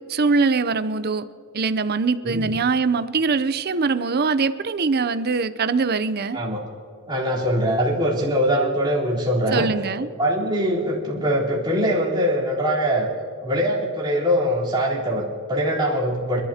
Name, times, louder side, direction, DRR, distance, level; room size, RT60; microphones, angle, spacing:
voice 1, 0.1-1.3 1.5-6.4 9.5-10.1, right 4 dB, 45° right, 13 dB, 0.6 m, -22 dB
voice 2, 6.3-6.6 7.1-9.7 10.2-13.1 13.4-16.4, equal, 20° right, -6 dB, 3.7 m, -22 dB
26.5 x 12.0 x 2.9 m, 2.5 s
head